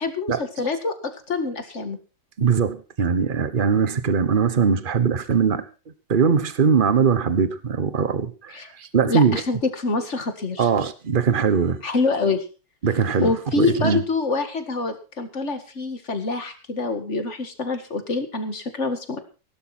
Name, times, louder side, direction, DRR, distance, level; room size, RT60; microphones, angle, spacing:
voice 1, 0.0-2.0 8.5-8.7 9.0-10.7 11.8-12.5 13.2-19.2, left 3 dB, 40° left, 8 dB, 2.1 m, -26 dB
voice 2, 2.4-5.7 6.1-9.4 10.6-11.8 12.8-14.0, right 6 dB, 35° right, 13 dB, 1.1 m, -21 dB
17.5 x 12.0 x 4.3 m, 0.33 s
omnidirectional pair, 2.1 m